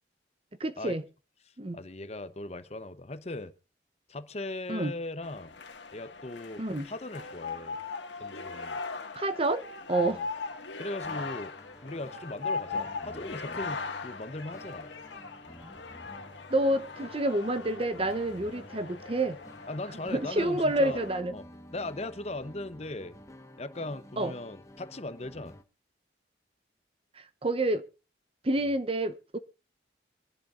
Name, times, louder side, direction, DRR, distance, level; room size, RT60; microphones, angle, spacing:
voice 1, 0.6-1.0 1.6-1.8 4.7-4.9 6.6-6.9 9.1-10.2 16.5-19.4 20.1-21.4 24.2-24.3 27.2-27.9 28.4-29.4, right 1 dB, 30° right, 0.8 m, -28 dB
voice 2, 1.7-3.5 4.1-5.5 5.9-7.8 8.2-8.8 10.0-10.3 10.8-11.5 11.8-14.9 19.7-21.0 21.3-21.4 21.7-23.1 23.6-25.5, left 2 dB, 35° left, 0.9 m, -39 dB
sound 1, 5.2-21.2, left 4 dB, 85° left, 1.8 m, -39 dB
sound 2, 11.0-25.6, equal, 20° left, 1.3 m, -51 dB
24.0 x 11.0 x 2.5 m
head